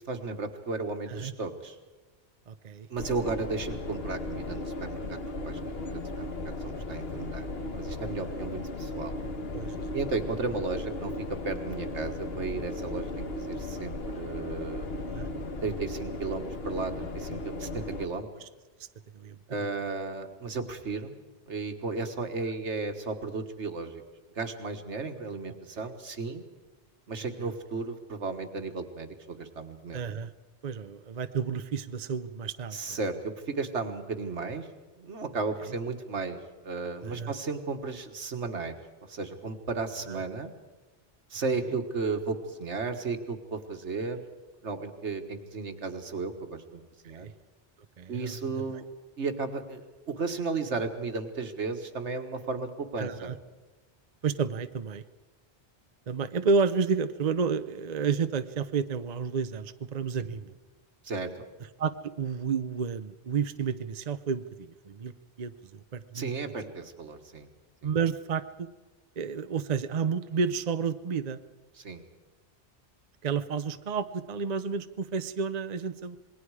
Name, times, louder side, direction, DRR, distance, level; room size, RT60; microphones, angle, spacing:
voice 1, 0.0-1.8 2.9-6.4 6.6-7.5 7.8-9.1 9.9-14.9 15.6-18.3 19.5-21.1 21.5-24.0 24.4-26.4 27.1-30.0 32.7-34.7 35.0-38.7 39.1-40.5 41.3-44.2 44.6-47.3 48.1-48.9 49.2-53.3 60.2-60.3 61.0-61.3 66.1-67.5 67.8-67.9 71.8-72.0, right 4 dB, 80° right, 6 dB, 1.8 m, -34 dB
voice 2, 2.5-2.9 9.5-9.8 15.1-15.3 19.1-19.7 27.4-27.5 29.9-30.3 30.6-33.0 37.0-37.3 40.1-40.2 47.1-47.3 48.0-48.5 53.0-53.4 54.2-55.0 56.1-60.5 61.8-65.1 65.4-66.3 67.8-68.7 69.2-71.4 73.2-76.2, right 5 dB, 40° right, 11 dB, 0.7 m, -31 dB
sound 1, 3.0-18.1, left 2 dB, 60° left, 1.5 m, -36 dB
27.0 x 21.0 x 4.9 m, 1.2 s
omnidirectional pair, 1.2 m